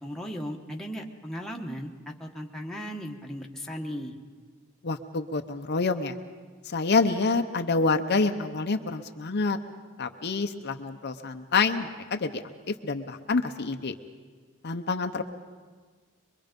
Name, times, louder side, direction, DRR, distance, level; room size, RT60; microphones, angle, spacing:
voice 1, 0.0-4.2, equal, ahead, 0 dB, 1.2 m, -37 dB
voice 2, 4.8-6.1 6.6-9.6 10.0-12.4 12.7-13.9 14.6-15.2, left 4 dB, 50° left, 6 dB, 0.7 m, -27 dB
23.5 x 23.0 x 5.2 m, 1.5 s
head